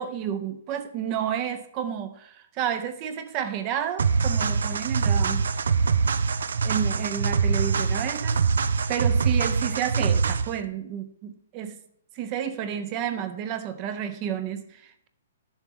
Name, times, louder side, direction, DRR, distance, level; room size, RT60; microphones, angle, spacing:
voice 1, 0.0-5.5 6.6-8.4 8.9-11.8 12.1-15.1, right 9 dB, 20° right, 10 dB, 0.5 m, -31 dB
sound 1, 4.0-10.6, right 5 dB, 85° right, 0.5 m, -24 dB
10.5 x 7.0 x 3.6 m, 0.70 s
hypercardioid pair, 175°, 0 cm